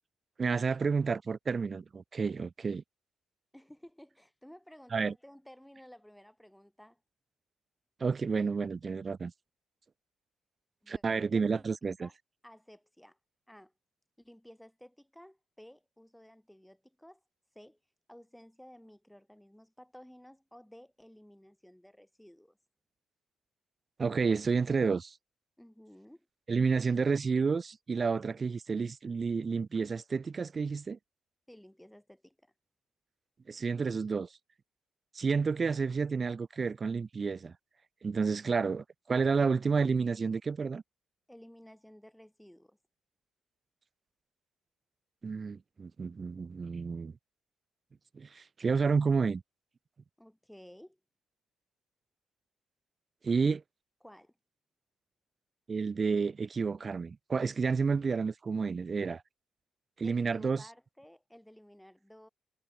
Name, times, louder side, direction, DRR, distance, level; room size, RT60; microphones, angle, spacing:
voice 1, 0.4-2.8 4.9-5.1 8.0-9.3 10.9-12.1 24.0-25.1 26.5-31.0 33.5-34.3 35.1-37.5 38.0-40.8 45.2-47.1 48.1-49.4 53.2-53.6 55.7-59.2 60.0-60.6, right 5 dB, 35° right, 0.9 m, -30 dB
voice 2, 3.5-7.0 10.8-11.7 12.0-12.2 12.4-13.2 13.5-13.7 14.2-17.2 17.6-17.8 18.1-22.6 25.6-26.3 31.5-32.5 41.3-42.8 50.2-51.0 54.0-54.3 60.0-62.3, equal, 5° left, 3.6 m, -54 dB
cardioid pair, 90°, 0 cm